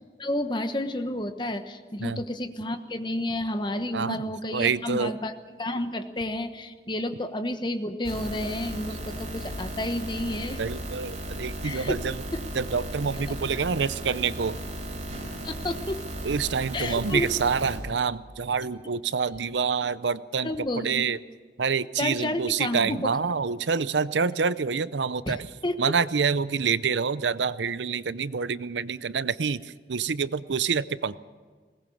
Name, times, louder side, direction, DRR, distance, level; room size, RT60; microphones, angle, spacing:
voice 1, 0.2-5.3 5.6-10.6 11.6-12.0 13.1-13.2 15.4-16.0 16.7-17.3 20.4-21.0 22.0-23.1 25.3-25.7, left 1 dB, 25° left, 8 dB, 1.2 m, -30 dB
voice 2, 3.9-4.2 4.5-5.1 10.6-12.2 12.5-14.6 16.2-21.2 21.6-25.5 25.8-31.2, right 5 dB, 90° right, 16 dB, 0.6 m, -27 dB
sound 1, 8.0-17.8, right 1 dB, 35° right, 4.7 m, -36 dB
21.0 x 19.0 x 7.2 m, 1.5 s
head